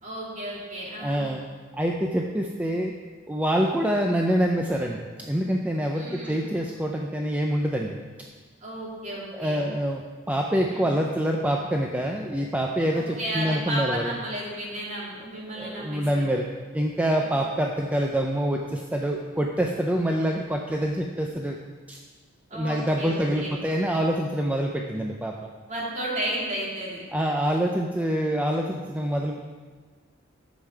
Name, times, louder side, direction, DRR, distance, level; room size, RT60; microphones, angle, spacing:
voice 1, 0.0-1.4 5.9-6.4 8.6-9.6 10.7-10.9 12.9-16.2 17.2-17.3 22.5-23.6 25.7-27.0, right 1 dB, 35° right, -6 dB, 3.0 m, -33 dB
voice 2, 1.0-1.4 1.7-2.9 3.3-8.0 9.3-14.1 15.6-16.4 16.7-21.6 21.9-22.0 22.5-25.4 27.1-29.4, equal, 10° right, 1 dB, 0.5 m, -26 dB
11.0 x 7.3 x 4.7 m, 1.5 s
head